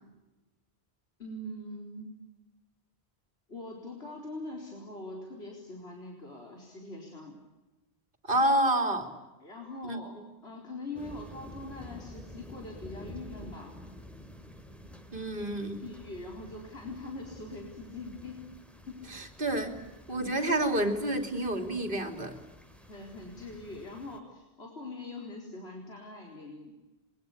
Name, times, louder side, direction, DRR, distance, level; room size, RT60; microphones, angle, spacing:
voice 1, 1.2-2.1 3.5-7.4 9.4-10.1 10.4-13.7 15.8-19.3 20.1-20.4 22.9-26.7, left 2 dB, 75° left, 0 dB, 4.5 m, -43 dB
voice 2, 8.3-9.1 9.8-10.0 15.1-15.8 19.1-19.8 20.1-22.3, right 1 dB, 55° right, 6 dB, 3.2 m, -28 dB
sound 1, 10.9-24.2, left 1 dB, ahead, 3.0 m, -50 dB
28.5 x 23.0 x 8.6 m, 1.1 s
omnidirectional pair, 1.1 m